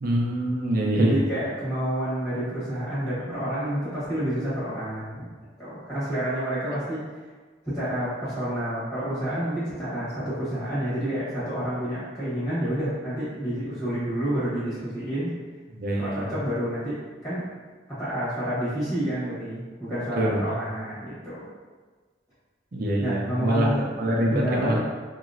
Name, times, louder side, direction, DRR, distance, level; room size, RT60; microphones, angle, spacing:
voice 1, 0.0-1.2 15.7-16.3 20.2-20.4 22.7-23.7 24.0-24.8, right 1 dB, 50° right, -1 dB, 0.5 m, -24 dB
voice 2, 1.0-5.2 5.6-7.0 7.6-15.3 15.9-17.0 17.2-17.4 18.0-21.5 23.0-23.9 24.3-24.8, right 1 dB, 15° left, -12 dB, 1.4 m, -29 dB
2.9 x 2.9 x 2.5 m, 1.4 s
head